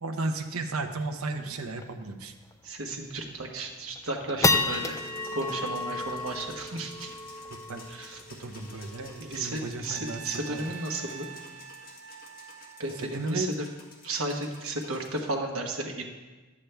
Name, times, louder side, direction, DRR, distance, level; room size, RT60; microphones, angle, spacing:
voice 1, 0.0-2.3 7.5-7.8 8.3-10.2 10.5-10.7 13.0-13.5, right 2 dB, 90° right, 6 dB, 0.8 m, -34 dB
sound 1, 0.9-1.0 1.3-1.4 1.8-2.0 2.5-2.6 3.2-3.5 3.9-10.5, left 3 dB, 15° left, 0.4 m, -32 dB
voice 2, 2.6-5.0 5.3-7.1 7.9-8.2 9.2-11.3 12.8-13.7 14.0-16.0, right 2 dB, 75° right, 2 dB, 1.3 m, -34 dB
sound 2, 4.4-15.3, left 2 dB, 45° left, 1.7 m, -51 dB
Trumpet, 9.9-14.1, right 8 dB, 60° right, 0.6 m, -46 dB
11.5 x 8.5 x 3.4 m, 1.2 s
head